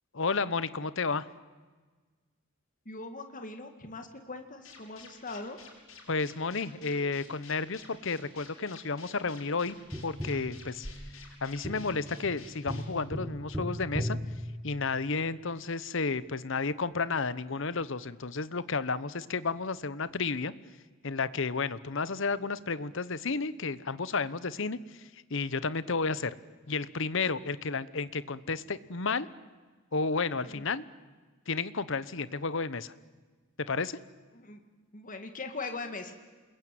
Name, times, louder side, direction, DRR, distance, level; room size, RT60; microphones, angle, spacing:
voice 1, 0.1-1.3 6.1-9.8 10.0-10.9 11.4-14.2 14.6-20.5 21.0-24.8 25.3-26.3 26.7-29.3 29.9-30.8 31.5-32.9 33.6-34.0, left 4 dB, 65° left, 16 dB, 1.0 m, -32 dB
voice 2, 2.9-5.6 30.4-30.6 34.3-34.6 34.9-36.1, left 3 dB, 40° left, 6 dB, 2.1 m, -40 dB
sound 1, 4.6-14.8 15.1-15.2 15.5-15.6 15.8-15.9 16.1-16.4 16.7-16.8 17.0-17.3 17.6-17.9 18.2-18.3 18.5-19.2 19.5-20.1 20.4-20.5 22.6-22.7 22.9-23.0 23.2-23.3 23.5-23.6 23.8-23.9, left 6 dB, 85° left, 7.1 m, -51 dB
Tap, 9.9-15.2 17.8-17.9, equal, 10° right, 1.8 m, -38 dB
28.0 x 21.5 x 9.3 m, 1.4 s
head